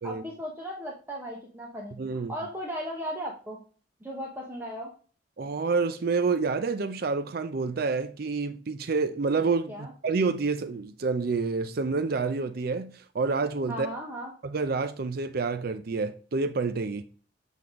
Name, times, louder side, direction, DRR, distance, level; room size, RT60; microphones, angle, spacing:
voice 1, 0.0-3.6 4.0-4.9 9.7-9.9 13.7-14.3, equal, 10° right, 1.0 m, -36 dB
voice 2, 2.0-2.3 5.4-13.9 14.4-17.0, right 4 dB, 55° right, 0.5 m, -28 dB
7.7 x 3.6 x 3.6 m
head